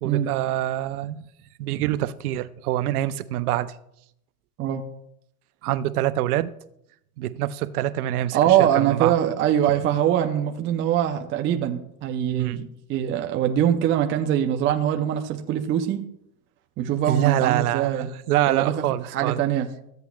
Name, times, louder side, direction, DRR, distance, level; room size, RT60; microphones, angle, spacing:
voice 1, 0.0-1.2 1.6-3.7 5.6-6.5 7.2-9.1 9.7-9.8 12.4-12.6 17.1-19.4, right 13 dB, 80° right, 14 dB, 0.7 m, -25 dB
voice 2, 8.3-16.0 16.8-18.1 18.5-19.7, right 10 dB, 25° right, 4 dB, 0.6 m, -23 dB
14.0 x 8.0 x 2.3 m, 0.77 s
supercardioid pair, 135°, 44 cm